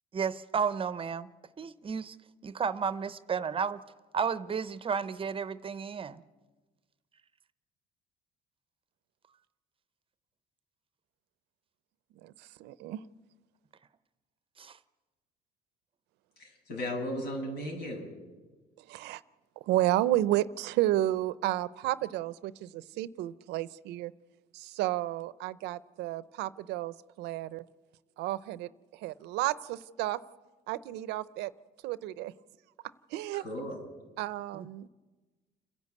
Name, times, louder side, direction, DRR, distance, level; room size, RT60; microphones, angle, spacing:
voice 1, 0.1-1.3 1.6-2.2 2.4-3.8 4.1-6.2 14.6-14.8 34.5-34.9, right 6 dB, 30° right, 0.7 m, -32 dB
voice 2, 12.2-13.0 18.9-19.2 19.6-24.1 24.5-27.6 28.2-30.2 30.7-31.5 31.8-32.3 33.1-33.4 34.2-34.9, right 15 dB, 90° right, 0.6 m, -32 dB
voice 3, 16.4-18.1 33.3-33.8, equal, 85° left, 7.2 m, -36 dB
29.0 x 10.5 x 8.4 m
cardioid pair, 110°, 17 cm